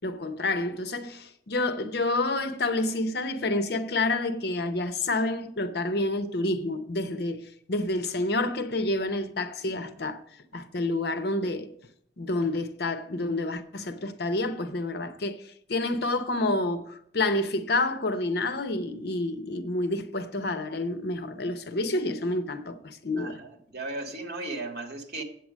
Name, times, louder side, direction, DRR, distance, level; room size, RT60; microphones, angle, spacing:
voice 1, 0.0-7.4 7.7-10.2 10.5-11.7 12.2-15.4 15.7-23.4, left 2 dB, 60° left, 0.7 m, -28 dB
voice 2, 23.2-25.2, right 2 dB, 60° right, 1.6 m, -36 dB
8.0 x 7.7 x 6.1 m
head